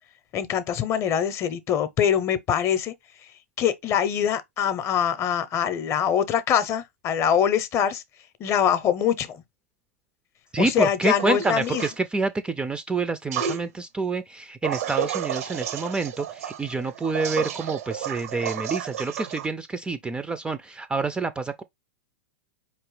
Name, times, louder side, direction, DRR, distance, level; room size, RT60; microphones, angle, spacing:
voice 1, 0.3-2.9 3.6-8.0 8.4-9.4 10.6-11.9 17.4-17.5, left 9 dB, 35° left, 0.6 m, -24 dB
voice 2, 10.5-21.6, right 3 dB, 10° right, 0.3 m, -28 dB
sound 1, 11.2-12.0 13.3-13.6 14.6-19.5, right 9 dB, 70° right, 0.6 m, -31 dB
4.5 x 2.9 x 3.1 m
hypercardioid pair, 110°, 8 cm